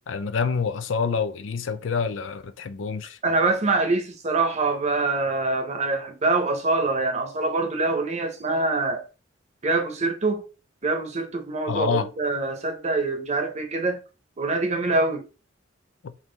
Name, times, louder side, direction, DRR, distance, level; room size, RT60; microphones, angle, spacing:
voice 1, 0.1-3.2 11.7-12.1 16.0-16.1, left 5 dB, 75° left, 0.5 m, -27 dB
voice 2, 3.2-9.1 9.6-10.4 10.8-14.0 14.4-15.2, right 3 dB, 35° right, 0.8 m, -24 dB
3.7 x 3.1 x 3.9 m
head